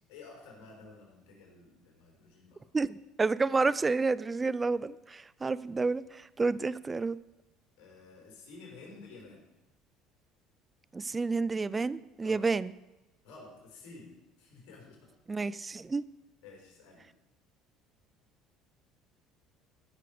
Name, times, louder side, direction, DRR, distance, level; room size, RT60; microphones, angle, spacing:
voice 1, 0.1-2.6 6.4-6.6 7.8-9.4 12.2-12.4 13.2-14.1 14.4-15.1 16.4-17.0, left 3 dB, 75° left, -1 dB, 4.5 m, -51 dB
voice 2, 2.7-7.2 10.9-12.7 15.3-16.0, right 4 dB, 25° right, 18 dB, 0.5 m, -30 dB
14.0 x 6.7 x 5.0 m, 1.0 s
supercardioid pair, 85°, 0 cm